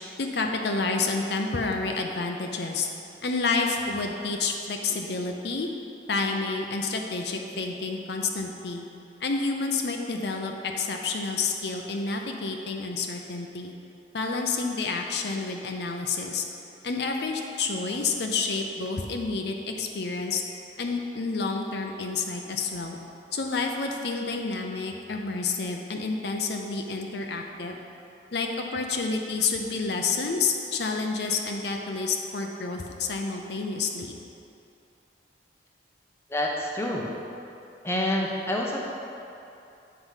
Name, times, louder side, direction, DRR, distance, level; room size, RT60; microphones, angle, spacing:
voice 1, 0.2-2.9 3.2-5.7 6.1-8.9 9.2-13.7 14.1-16.4 16.8-20.4 20.8-23.0 23.3-27.8 28.3-34.2, left 4 dB, 60° left, 2 dB, 0.6 m, -29 dB
voice 2, 36.3-37.1 37.8-38.8, left 1 dB, 15° left, -1 dB, 0.7 m, -27 dB
8.0 x 4.7 x 5.6 m, 2.7 s
head